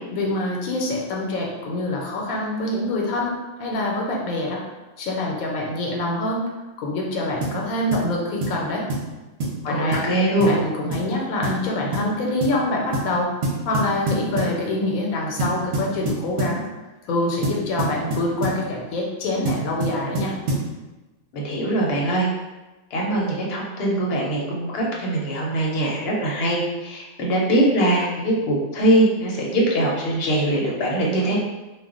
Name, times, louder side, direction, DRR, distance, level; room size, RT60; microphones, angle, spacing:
voice 1, 0.1-3.3 3.6-4.6 5.0-6.4 6.8-8.9 9.6-10.1 10.5-13.3 13.6-16.6 17.0-20.4, left 2 dB, 85° left, -1 dB, 1.0 m, -25 dB
sound 1, 7.4-7.6 7.9-8.1 8.4-8.6 8.9-9.1 9.4-9.6 9.9-10.1 10.4-10.6 10.9-11.1 11.4-11.6 11.9-12.1 12.4-12.6 12.9-13.1 13.4-14.6 15.4-16.6 17.4-18.6 19.5-20.7, right 2 dB, 60° right, 0.9 m, -26 dB
voice 2, 9.7-10.5 21.3-22.3 22.9-31.4, right 1 dB, 55° left, -3 dB, 0.8 m, -22 dB
2.3 x 2.2 x 3.6 m, 1.1 s
omnidirectional pair, 1.4 m